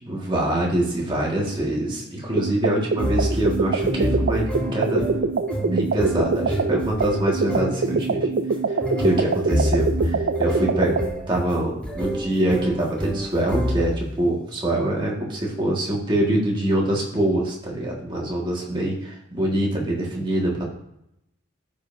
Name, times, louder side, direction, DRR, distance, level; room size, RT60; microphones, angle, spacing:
voice 1, 0.0-5.1 5.6-8.3 9.0-11.0 11.3-19.0 19.3-20.6, right 1 dB, 25° right, -3 dB, 1.7 m, -24 dB
sound 1, 2.4-11.1, right 4 dB, 60° right, 0.4 m, -24 dB
sound 2, 3.0-14.2, equal, 5° left, 3.2 m, -28 dB
13.5 x 5.4 x 2.7 m, 0.81 s
head